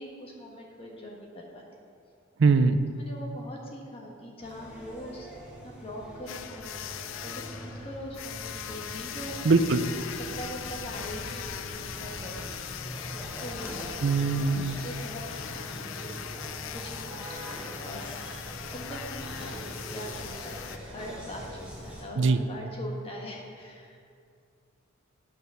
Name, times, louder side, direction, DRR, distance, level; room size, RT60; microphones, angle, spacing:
voice 1, 0.0-1.6 2.9-5.3 5.6-6.8 7.2-9.6 9.9-12.7 13.4-13.7 14.7-16.3 16.7-18.0 18.7-24.1, equal, 30° left, -2 dB, 1.5 m, -42 dB
voice 2, 2.4-2.9 9.4-9.9 14.0-14.8 22.2-22.4, right 4 dB, 60° right, 11 dB, 0.5 m, -22 dB
sound 1, 4.4-22.0, equal, 5° right, 1.5 m, -42 dB
sound 2, 6.3-20.8, left 9 dB, 70° left, 0.4 m, -40 dB
8.9 x 6.0 x 6.8 m, 2.4 s
head